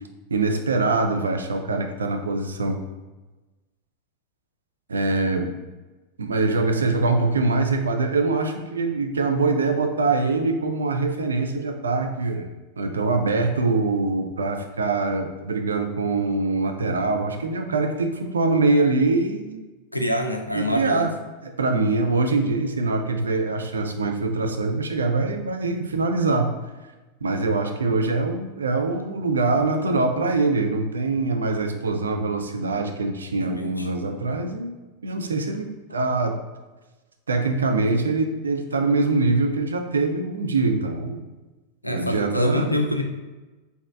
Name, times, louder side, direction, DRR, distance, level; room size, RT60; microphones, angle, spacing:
voice 1, 0.3-2.8 4.9-5.5 6.2-12.5 12.8-19.7 20.5-21.1 21.4-26.5 27.2-34.7 35.0-36.4 37.3-41.2 41.9-42.7, right 3 dB, 70° right, 4 dB, 0.4 m, -23 dB
voice 2, 19.9-21.1 33.4-33.9 41.8-43.0, left 1 dB, 90° left, 4 dB, 0.4 m, -26 dB
4.2 x 3.5 x 2.3 m, 1.2 s
figure-of-eight pair, 90°, 0 cm